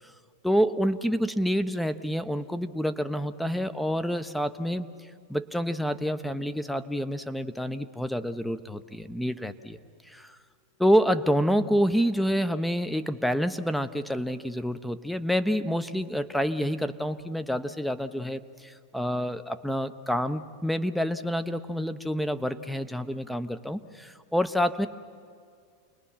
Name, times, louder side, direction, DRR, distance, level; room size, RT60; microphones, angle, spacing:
voice 1, 0.4-4.9 5.3-9.8 10.1-10.4 10.8-24.9, equal, ahead, 11 dB, 0.9 m, -28 dB
29.5 x 20.0 x 5.8 m, 2.2 s
hypercardioid pair, 105°, 0 cm